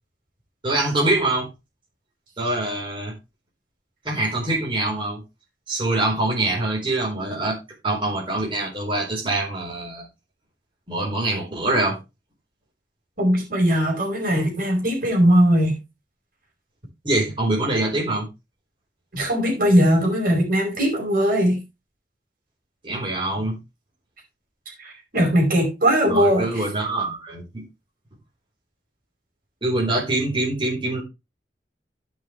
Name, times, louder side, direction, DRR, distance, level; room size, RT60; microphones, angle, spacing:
voice 1, 0.6-1.5 2.4-3.1 4.0-5.2 5.7-7.6 7.8-10.1 10.9-12.0 17.0-18.3 22.8-23.6 26.1-27.6 29.6-31.0, right 2 dB, 30° right, 4.4 m, -24 dB
voice 2, 13.2-15.8 19.1-21.6 24.8-26.6, equal, 55° right, 5.0 m, -19 dB
15.5 x 5.8 x 3.3 m
head